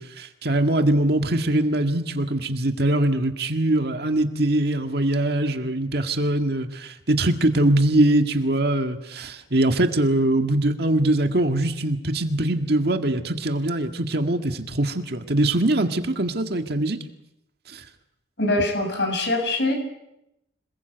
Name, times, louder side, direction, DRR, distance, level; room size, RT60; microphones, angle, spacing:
voice 1, 0.0-17.0 17.7-17.8, right 1 dB, 55° right, 6 dB, 1.9 m, -22 dB
voice 2, 18.4-19.7, left 2 dB, 60° left, 5 dB, 7.2 m, -23 dB
27.0 x 21.0 x 8.0 m, 0.85 s
head